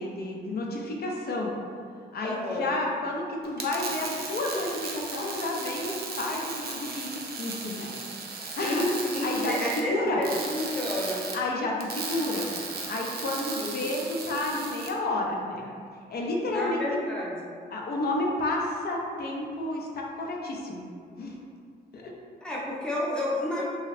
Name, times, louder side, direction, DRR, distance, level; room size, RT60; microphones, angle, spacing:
voice 1, 0.0-1.5 2.1-7.9 8.4-8.9 9.2-10.2 11.3-12.5 12.9-15.7 16.1-16.8 17.7-20.8 21.2-21.3 21.9-22.1, left 2 dB, 60° left, -1 dB, 0.6 m, -31 dB
voice 2, 2.2-2.7 8.5-11.2 13.6-13.8 16.4-17.3 22.4-23.6, left 1 dB, 5° left, -6 dB, 0.6 m, -30 dB
sound 1, 3.4-14.9, right 4 dB, 60° right, 0.5 m, -36 dB
2.9 x 2.3 x 3.1 m, 2.2 s
cardioid pair, 90°, 19 cm